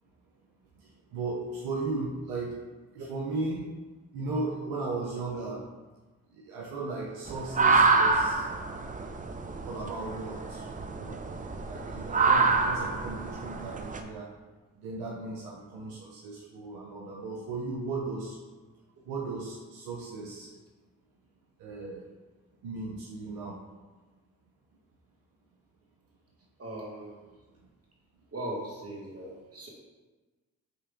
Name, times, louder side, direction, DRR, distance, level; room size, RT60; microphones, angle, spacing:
voice 1, 0.8-2.6 2.9-3.7 4.1-5.6 6.3-8.5 9.6-11.2 11.7-14.3 14.8-18.4 19.0-20.5 21.6-22.0 22.6-23.6, right 3 dB, 90° right, -3 dB, 0.5 m, -36 dB
sound 1, 7.3-14.0, right 4 dB, 20° right, 0.4 m, -27 dB
voice 2, 26.6-27.2 28.3-29.7, right 1 dB, 40° right, -3 dB, 1.4 m, -39 dB
5.2 x 3.2 x 2.5 m, 1.3 s
supercardioid pair, 40°, 37 cm